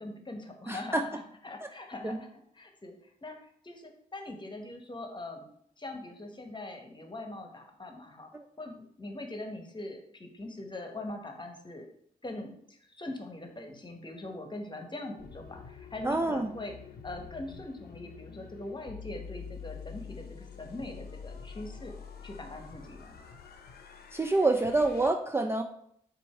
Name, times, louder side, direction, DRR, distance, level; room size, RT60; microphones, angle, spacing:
voice 1, 0.0-2.3 2.5-5.5 5.8-8.3 8.6-11.9 12.2-12.6 12.9-16.8 17.0-21.9 22.2-23.2, left 2 dB, 30° left, 4 dB, 1.0 m, -42 dB
voice 2, 0.7-1.0 2.0-2.2 16.0-16.5 24.1-25.6, right 2 dB, 15° right, 4 dB, 0.4 m, -27 dB
sound 1, 15.2-25.1, left 6 dB, 75° left, 0.7 m, -47 dB
4.4 x 2.6 x 4.4 m, 0.70 s
cardioid pair, 50°, 16 cm